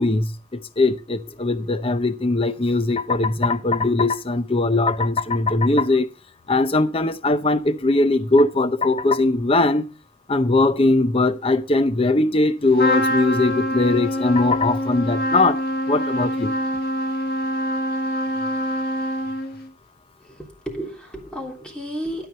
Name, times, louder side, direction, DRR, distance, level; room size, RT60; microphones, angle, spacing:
voice 1, 0.0-6.1 6.5-9.8 10.3-15.6 15.9-16.5, left 2 dB, 30° left, 0.7 m, -20 dB
voice 2, 1.3-1.6 2.9-3.0 20.2-22.3, equal, 5° left, 3.3 m, -34 dB
Trumpet, 12.8-19.7, equal, 55° left, 2.1 m, -25 dB
12.5 x 5.9 x 5.4 m
head